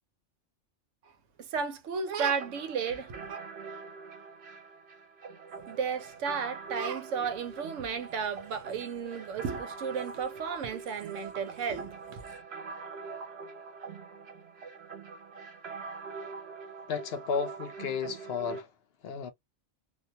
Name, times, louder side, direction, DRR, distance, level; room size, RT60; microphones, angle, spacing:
voice 1, 1.4-3.4 5.7-12.2, right 6 dB, 85° right, 1.0 m, -33 dB
sound 1, 2.4-18.6, right 5 dB, 60° right, 1.0 m, -43 dB
voice 2, 16.9-18.7 19.0-19.3, left 6 dB, 65° left, 0.7 m, -33 dB
2.4 x 2.3 x 2.7 m
omnidirectional pair, 1.2 m